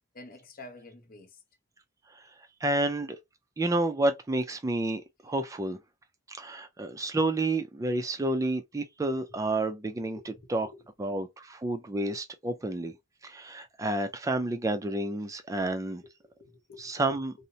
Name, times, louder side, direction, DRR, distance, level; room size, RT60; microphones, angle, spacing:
voice 1, 0.1-1.4 7.9-8.0 10.2-10.9 16.0-16.1 16.4-17.2, left 2 dB, 50° left, 0.6 m, -49 dB
voice 2, 2.6-3.2 3.6-5.8 6.3-10.7 11.0-13.0 13.2-16.0 16.8-17.3, right 2 dB, 15° right, 0.3 m, -30 dB
2.7 x 2.0 x 2.6 m
head